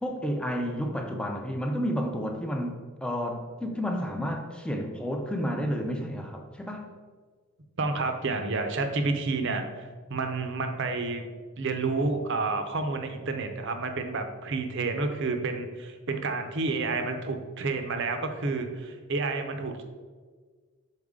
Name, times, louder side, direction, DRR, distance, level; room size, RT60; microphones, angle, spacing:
voice 1, 0.0-6.9, equal, 5° left, 3 dB, 0.5 m, -31 dB
voice 2, 7.8-11.2 11.6-19.8, right 3 dB, 55° right, 6 dB, 0.6 m, -30 dB
6.4 x 4.3 x 3.6 m, 1.5 s
head